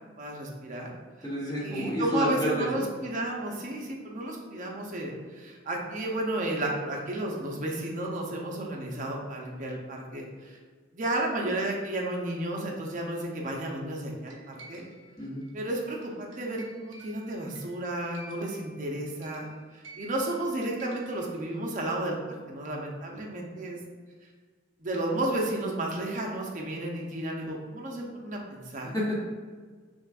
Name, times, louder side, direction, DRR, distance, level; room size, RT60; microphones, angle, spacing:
voice 1, 0.2-0.9 1.6-10.6 10.9-14.9 15.5-19.5 19.7-23.8 24.8-28.9, right 1 dB, 40° right, -1 dB, 0.6 m, -32 dB
voice 2, 1.2-2.9 15.2-15.5 28.8-29.2, equal, 20° left, -6 dB, 1.0 m, -30 dB
sound 1, 14.3-21.5, right 2 dB, 85° right, 0.8 m, -52 dB
6.1 x 2.3 x 2.4 m, 1.5 s
head